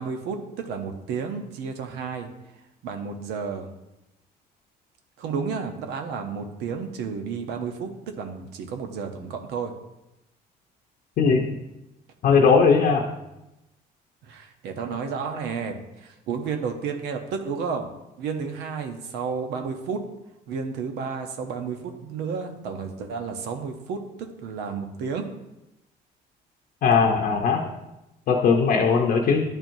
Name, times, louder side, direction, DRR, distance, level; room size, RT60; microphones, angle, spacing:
voice 1, 0.0-2.3 2.8-3.7 5.2-7.9 8.2-9.7 14.3-17.9 18.2-20.0 20.5-25.3, right 5 dB, 85° right, 5 dB, 0.8 m, -31 dB
voice 2, 12.2-13.1 26.8-27.7 28.3-29.4, left 5 dB, 60° left, 1 dB, 0.7 m, -19 dB
10.5 x 4.5 x 2.6 m, 0.93 s
cardioid pair, 110°, 17 cm